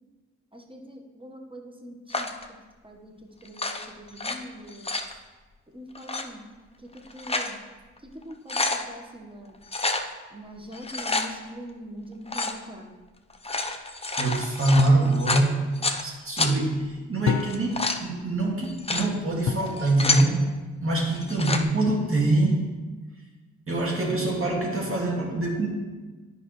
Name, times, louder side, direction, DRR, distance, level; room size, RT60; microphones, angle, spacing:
voice 1, 0.5-2.3 2.8-3.1 3.4-4.9 5.7-6.5 7.1-7.6 8.1-9.5 10.3-12.9, equal, 15° right, 2 dB, 1.4 m, -43 dB
sound 1, 2.1-2.5 3.5-4.4 4.7-5.1 6.0-6.2 6.9-7.5 8.0-8.1 8.3-8.8 9.7-10.1 10.7-11.3 12.3-12.6 13.3-16.0 16.4-16.5 17.4-18.0 18.6-19.1 19.7-20.3 21.2-21.6, left 3 dB, 20° left, 0.8 m, -28 dB
voice 2, 14.2-15.6 16.0-20.5 20.8-22.6 23.7-25.7, right 2 dB, 45° right, -2 dB, 2.2 m, -24 dB
sound 2, 14.8-15.1 17.3-17.9 19.5-19.8 21.9-22.4, left 7 dB, 65° left, 0.5 m, -29 dB
10.0 x 5.3 x 3.2 m, 1.3 s
supercardioid pair, 45°, 30 cm